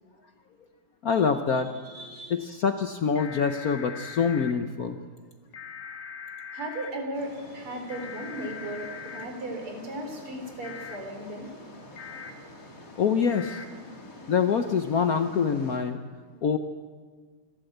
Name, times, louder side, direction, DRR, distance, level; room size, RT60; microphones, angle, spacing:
voice 1, 1.0-1.7 2.3-5.0 13.0-13.6 14.3-16.0 16.4-16.6, left 6 dB, 60° left, 8 dB, 1.0 m, -25 dB
voice 2, 1.8-2.4 6.5-11.5, right 1 dB, 80° right, 3 dB, 4.4 m, -36 dB
sound 1, 3.2-4.5 5.5-6.9 7.9-9.3 10.6-11.0 12.0-12.3 13.3-13.7, left 6 dB, 85° left, 2.6 m, -41 dB
sound 2, 7.1-15.8, left 1 dB, 40° left, 3.0 m, -47 dB
26.0 x 13.0 x 8.0 m, 1.5 s
omnidirectional pair, 2.4 m